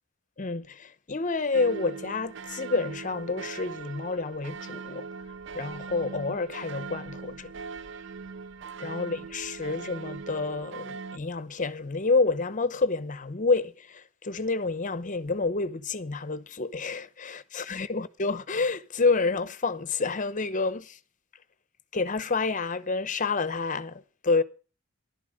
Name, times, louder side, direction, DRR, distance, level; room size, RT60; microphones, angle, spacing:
voice 1, 0.4-5.1 5.5-7.5 8.8-21.0 21.9-24.4, left 3 dB, 40° left, 0.8 m, -29 dB
sound 1, 1.5-11.2, right 5 dB, 65° right, 0.6 m, -40 dB
12.5 x 12.0 x 6.4 m
head